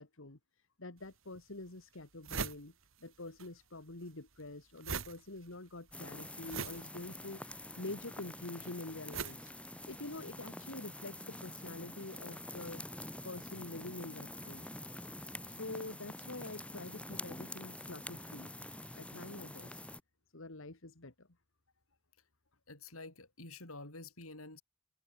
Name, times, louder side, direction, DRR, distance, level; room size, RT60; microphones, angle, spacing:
voice 1, 0.0-2.7 3.0-12.9 13.2-14.6 15.0-15.1 15.4-18.6 18.9-19.8 20.3-21.3, left 2 dB, 65° left, 2.2 m, -46 dB
sound 1, 1.0-1.1 1.6-1.7 1.9-3.5 3.7-10.3, right 5 dB, 70° right, 3.7 m, -43 dB
sound 2, 5.9-20.0, left 1 dB, 5° left, 5.8 m, -47 dB
voice 2, 22.7-24.6, left 2 dB, 85° left, 8.0 m, -49 dB
head